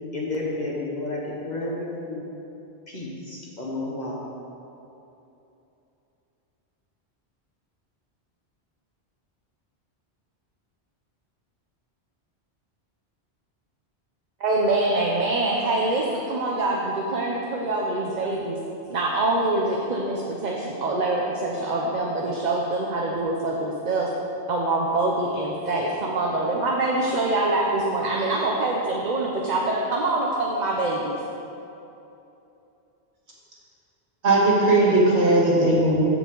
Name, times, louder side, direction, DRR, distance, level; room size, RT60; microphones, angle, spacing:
voice 1, 0.1-2.2 2.9-4.3, left 2 dB, 40° left, -4 dB, 1.5 m, -31 dB
voice 2, 14.4-18.6 18.9-24.1 24.5-31.2, right 2 dB, 45° right, -1 dB, 0.8 m, -25 dB
voice 3, 34.2-36.0, right 2 dB, 85° right, -5 dB, 2.1 m, -18 dB
15.0 x 5.0 x 3.8 m, 2.9 s
omnidirectional pair, 1.1 m